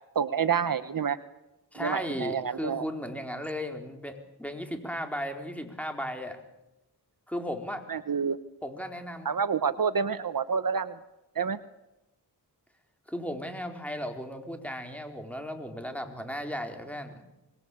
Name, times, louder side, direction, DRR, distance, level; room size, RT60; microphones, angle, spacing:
voice 1, 0.1-1.2 1.8-2.8 7.9-8.4 9.2-11.0 11.3-11.6, right 6 dB, 55° right, 13 dB, 1.0 m, -28 dB
voice 2, 1.7-6.4 7.3-7.8 8.6-9.3 13.1-17.2, equal, 5° left, 5 dB, 4.3 m, -35 dB
25.5 x 21.0 x 8.6 m, 0.96 s
wide cardioid pair, 75°, 40 cm